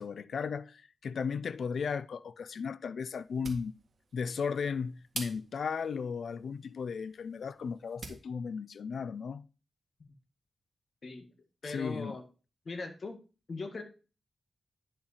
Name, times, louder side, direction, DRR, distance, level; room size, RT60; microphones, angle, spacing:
voice 1, 0.0-3.7 4.1-9.5 11.7-12.2, left 6 dB, 70° left, 0.4 m, -35 dB
sound 1, 3.2-8.3, right 3 dB, 40° right, 1.9 m, -48 dB
voice 2, 11.6-12.2 12.6-13.2 13.5-13.8, left 3 dB, 45° left, 1.5 m, -39 dB
10.0 x 5.7 x 4.1 m
wide cardioid pair, 125°, 0 cm